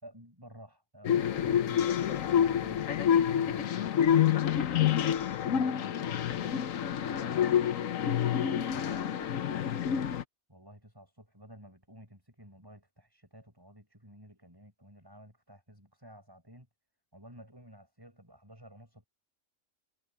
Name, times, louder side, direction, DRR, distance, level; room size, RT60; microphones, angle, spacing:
voice 1, 0.0-3.0 3.3-4.0 4.5-5.2 5.6-6.6 7.0-10.0 10.5-16.7 17.1-19.1, equal, 15° right, 6.6 m, -52 dB
sound 1, 1.0-10.2, left 9 dB, 75° left, 1.3 m, -28 dB
omnidirectional pair, 1.4 m